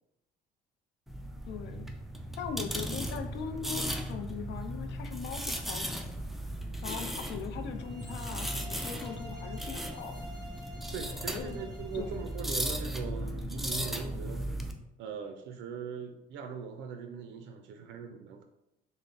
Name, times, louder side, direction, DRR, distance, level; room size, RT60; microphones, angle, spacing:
sound 1, 1.1-14.7, equal, ahead, 0.3 m, -37 dB
voice 1, 1.5-1.9 2.4-6.1 6.8-10.2 11.3-11.6 11.9-12.2, left 7 dB, 70° left, 7 dB, 0.5 m, -40 dB
sound 2, 7.7-12.5, left 1 dB, 25° right, 0.8 m, -49 dB
voice 2, 10.9-14.6 15.0-18.4, right 6 dB, 70° right, 6 dB, 0.4 m, -40 dB
3.4 x 2.1 x 3.8 m, 0.87 s
cardioid pair, 105°, 19 cm